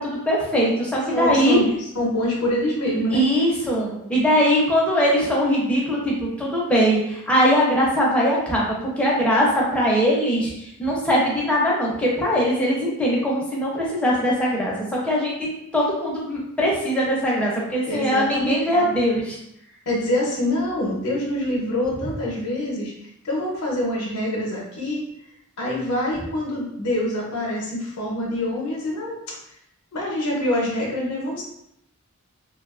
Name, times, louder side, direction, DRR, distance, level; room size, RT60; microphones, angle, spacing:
voice 1, 0.0-1.6 3.1-15.3 15.7-19.4, equal, 5° left, -5 dB, 0.5 m, -21 dB
voice 2, 1.1-1.7 1.9-3.3 17.8-18.9 19.9-25.0 25.6-29.4 29.9-31.4, left 1 dB, 85° left, -3 dB, 0.6 m, -25 dB
2.7 x 2.2 x 2.3 m, 0.79 s
head